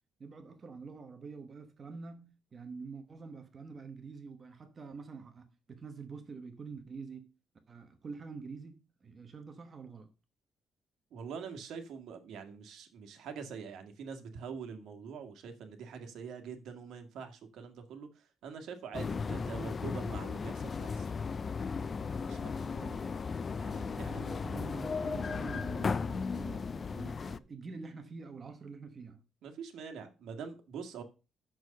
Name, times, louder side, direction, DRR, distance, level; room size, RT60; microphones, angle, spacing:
voice 1, 0.2-7.3 7.7-10.1 22.7-23.2 24.0-29.2, right 4 dB, 30° right, 1.0 m, -46 dB
voice 2, 11.1-21.1 22.1-22.7 23.6-24.3 29.4-31.0, right 6 dB, 70° right, 1.7 m, -45 dB
sound 1, 18.9-27.4, left 5 dB, 30° left, 0.4 m, -36 dB
6.5 x 6.2 x 6.4 m
cardioid pair, 155°, 0 cm